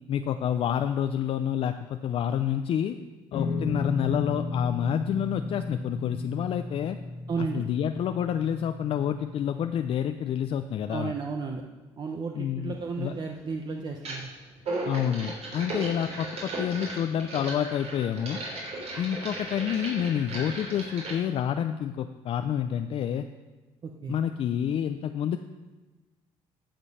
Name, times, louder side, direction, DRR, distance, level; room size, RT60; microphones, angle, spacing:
voice 1, 0.1-3.0 3.3-7.0 7.4-11.1 12.3-13.1 14.9-18.4 19.0-23.3 24.1-25.4, left 9 dB, 55° left, 8 dB, 0.5 m, -28 dB
sound 1, 3.3-9.9, left 3 dB, 75° left, 1.5 m, -34 dB
voice 2, 7.3-7.6 10.9-11.6 12.0-14.3 24.0-24.2, right 5 dB, 40° right, 2 dB, 0.8 m, -33 dB
sound 2, 12.7-12.8 14.0-14.3 14.6-21.1, right 2 dB, 65° right, 3.6 m, -36 dB
14.5 x 5.2 x 5.5 m, 1.2 s
cardioid pair, 90°, 11 cm